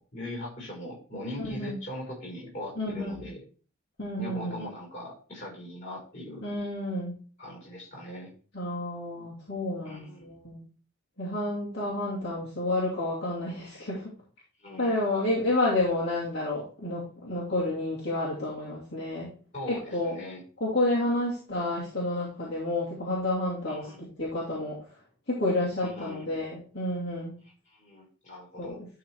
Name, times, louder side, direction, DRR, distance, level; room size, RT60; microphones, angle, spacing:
voice 1, 0.1-3.4 4.2-6.4 7.4-8.3 9.8-10.3 14.6-15.0 19.5-20.4 23.7-24.0 25.8-26.3 27.7-28.8, left 1 dB, 35° left, -1 dB, 5.1 m, -40 dB
voice 2, 1.4-1.8 2.8-3.3 4.0-4.6 6.4-7.1 8.5-10.6 11.2-14.1 14.8-19.3 19.7-20.2 20.6-23.9 24.2-24.8 25.3-27.3 28.6-28.9, left 1 dB, 50° left, -7 dB, 2.6 m, -30 dB
11.5 x 4.0 x 4.7 m, 0.39 s
head